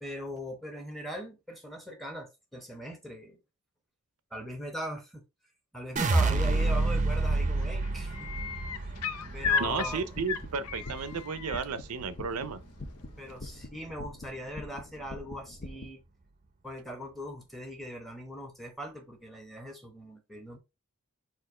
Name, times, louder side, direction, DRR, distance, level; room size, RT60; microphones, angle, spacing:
voice 1, 0.0-3.4 4.3-5.2 5.7-8.4 9.3-10.0 13.2-16.0 16.6-20.6, equal, ahead, 1.0 m, -40 dB
sound 1, 6.0-12.1 12.5-13.1, right 2 dB, 35° right, 0.6 m, -29 dB
sound 2, 6.9-7.3 7.6-11.6 13.3-13.4, left 6 dB, 90° left, 0.6 m, -34 dB
sound 3, 9.2-15.8, left 2 dB, 45° left, 0.8 m, -45 dB
voice 2, 9.6-12.6, right 5 dB, 80° right, 0.5 m, -33 dB
4.3 x 2.5 x 4.8 m
head